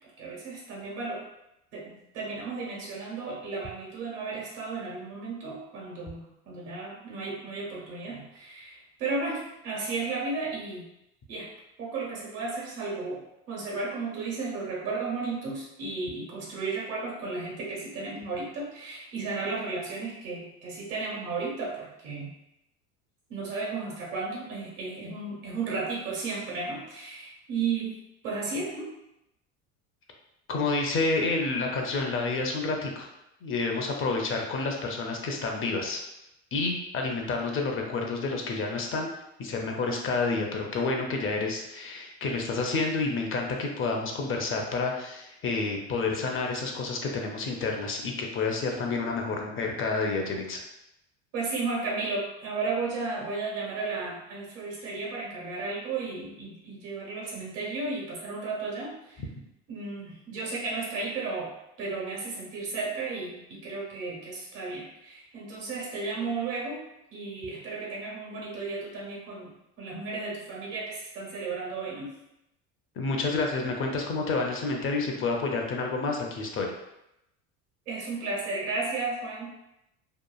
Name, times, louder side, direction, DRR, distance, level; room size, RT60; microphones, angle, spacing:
voice 1, 0.2-1.2 1.7-10.8 11.3-11.5 11.8-22.3 23.3-28.9 51.3-59.2 59.7-61.5 61.8-66.8 67.1-69.5 69.8-72.1 77.9-79.5, right 3 dB, 80° right, -4 dB, 1.2 m, -34 dB
voice 2, 30.5-33.1 33.4-36.0 36.5-39.1 39.4-50.6 73.0-76.7, left 3 dB, 35° left, 1 dB, 0.5 m, -29 dB
2.9 x 2.3 x 2.3 m, 0.85 s
supercardioid pair, 90°, 35 cm